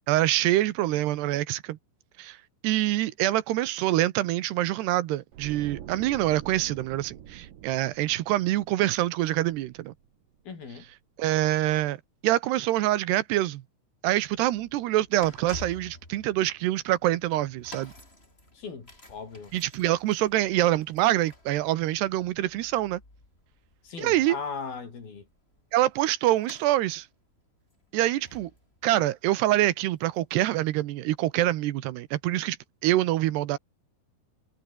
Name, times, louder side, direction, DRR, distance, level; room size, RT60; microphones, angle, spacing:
voice 1, 0.1-1.8 2.2-2.4 2.6-9.9 11.2-12.0 12.2-13.6 14.0-17.9 19.5-23.0 24.0-24.4 25.7-27.1 27.9-28.5 28.8-32.6 32.8-33.6, right 15 dB, 80° right, 3.1 m, -25 dB
sound 1, 5.3-10.4 10.7-10.9, right 10 dB, 60° right, 3.1 m, -46 dB
voice 2, 10.5-10.9 18.5-19.5 23.8-25.3, left 5 dB, 60° left, 7.0 m, -38 dB
sound 2, 14.2-31.1 31.8-31.9, left 1 dB, 15° left, 6.2 m, -51 dB
omnidirectional pair, 4.8 m